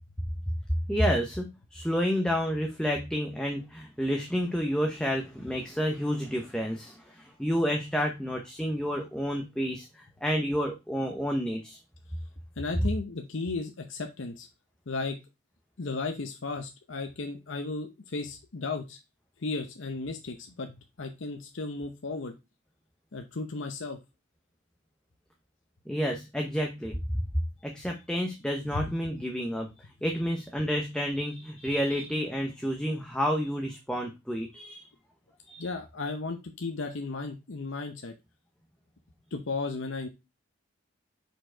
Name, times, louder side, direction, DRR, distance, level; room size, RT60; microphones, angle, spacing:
voice 1, 0.9-11.8 25.9-27.2 27.6-34.9 35.5-35.7, equal, 5° left, 1 dB, 0.6 m, -30 dB
voice 2, 12.6-14.5 14.9-15.2 15.8-19.0 19.4-22.3 23.1-24.0 28.7-28.8 35.6-38.1 39.3-40.1, left 3 dB, 60° left, 4 dB, 0.7 m, -35 dB
5.1 x 4.4 x 4.4 m, 0.24 s
head